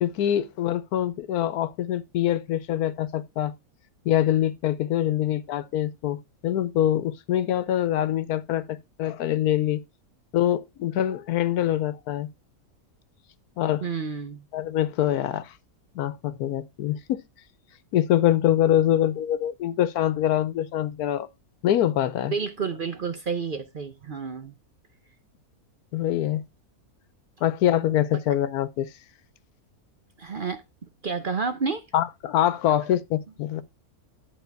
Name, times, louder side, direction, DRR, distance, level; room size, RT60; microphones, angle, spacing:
voice 1, 0.0-3.5 4.0-9.8 10.3-12.3 13.6-13.8 14.5-15.5 15.9-17.2 17.9-21.3 21.6-22.3 25.9-26.4 27.4-28.9 31.9-33.6, left 12 dB, 85° left, 1.2 m, -24 dB
voice 2, 13.8-14.4 22.3-24.6 30.2-30.6 31.0-31.9, right 5 dB, 50° right, 0.7 m, -30 dB
10.5 x 4.2 x 4.5 m
omnidirectional pair, 1.6 m